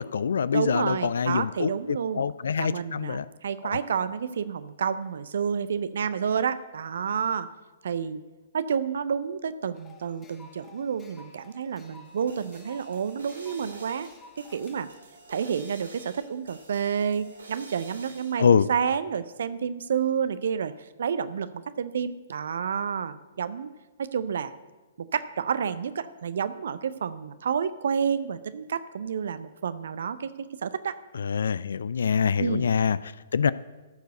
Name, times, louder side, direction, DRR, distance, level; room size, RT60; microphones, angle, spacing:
voice 1, 0.0-3.3 3.6-3.8 18.4-18.7 31.1-33.5, left 6 dB, 65° left, 18 dB, 0.3 m, -25 dB
voice 2, 0.5-2.2 2.6-7.5 7.8-8.2 8.5-14.1 14.4-14.9 15.3-23.7 24.0-24.5 25.0-30.9 32.4-32.6, right 7 dB, 65° right, 13 dB, 0.5 m, -29 dB
sound 1, 9.7-14.8, left 3 dB, 15° left, 1.2 m, -53 dB
sound 2, 12.0-18.4, right 2 dB, 80° right, 3.2 m, -49 dB
13.0 x 4.7 x 7.8 m, 1.2 s
figure-of-eight pair, 120°, 0 cm